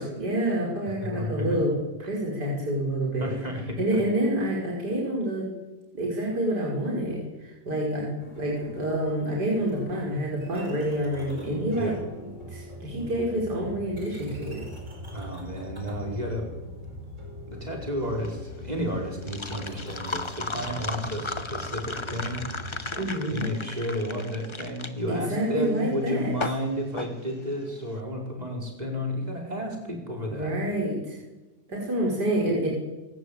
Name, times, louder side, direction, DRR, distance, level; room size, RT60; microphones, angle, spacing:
voice 1, 0.0-1.7 2.0-3.3 3.8-5.5 5.9-8.1 8.4-11.9 12.5-14.6 23.0-23.5 25.1-26.3 30.3-31.2 31.7-32.7, right 1 dB, 70° right, -3 dB, 6.0 m, -27 dB
voice 2, 1.2-1.6 3.2-4.0 11.8-12.0 15.1-16.5 17.5-22.4 23.3-30.5, equal, 20° right, 1 dB, 5.2 m, -32 dB
sound 1, 8.2-22.9, equal, 45° right, 5.3 m, -42 dB
sound 2, 18.0-27.9, left 3 dB, 20° left, 0.9 m, -36 dB
28.0 x 14.0 x 8.9 m, 1.1 s
omnidirectional pair, 1.9 m